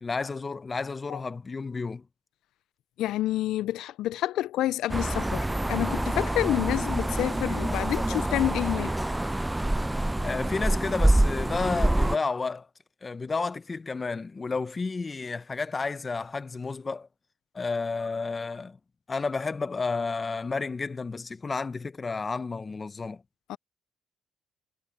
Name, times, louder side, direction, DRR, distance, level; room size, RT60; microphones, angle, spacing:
voice 1, 0.0-2.1 10.2-12.7 13.0-17.1 17.5-18.8 19.1-23.2, left 4 dB, 30° left, 0.9 m, -31 dB
voice 2, 3.0-8.9 23.5-23.6, left 14 dB, 85° left, 0.3 m, -28 dB
sound 1, 4.9-12.2, right 1 dB, 10° right, 0.5 m, -26 dB
cardioid pair, 90°, 0 cm